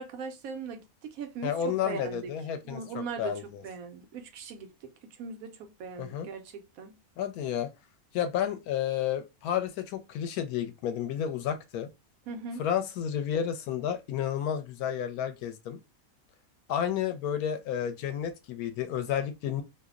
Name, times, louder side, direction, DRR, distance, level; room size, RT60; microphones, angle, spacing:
voice 1, 0.0-1.5 1.8-2.3 2.6-4.7 5.2-7.0 12.3-12.6, right 5 dB, 75° right, 1.0 m, -39 dB
voice 2, 1.4-3.6 6.0-6.3 7.2-7.7 8.1-11.9 12.6-15.8 16.7-19.6, left 9 dB, 85° left, 1.1 m, -31 dB
2.8 x 2.0 x 2.3 m
omnidirectional pair, 1.6 m